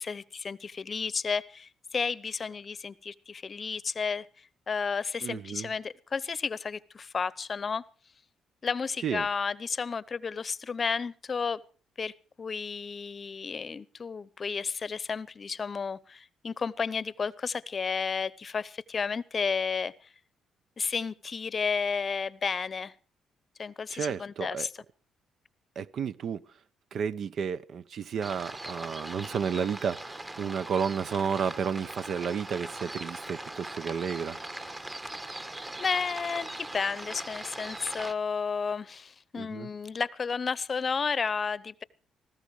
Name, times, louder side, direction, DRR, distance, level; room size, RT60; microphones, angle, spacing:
voice 1, 0.0-4.3 4.7-7.8 8.6-11.6 12.0-12.1 12.4-19.9 20.8-22.9 23.6-24.7 35.8-41.8, left 5 dB, 40° left, 0.8 m, -32 dB
voice 2, 5.2-5.7 9.0-9.3 23.9-24.7 25.8-26.4 26.9-34.4 39.4-39.7, right 7 dB, 60° right, 0.7 m, -32 dB
sound 1, 28.2-38.1, right 1 dB, 20° right, 1.2 m, -40 dB
19.0 x 15.5 x 4.8 m
cardioid pair, 90°, 0 cm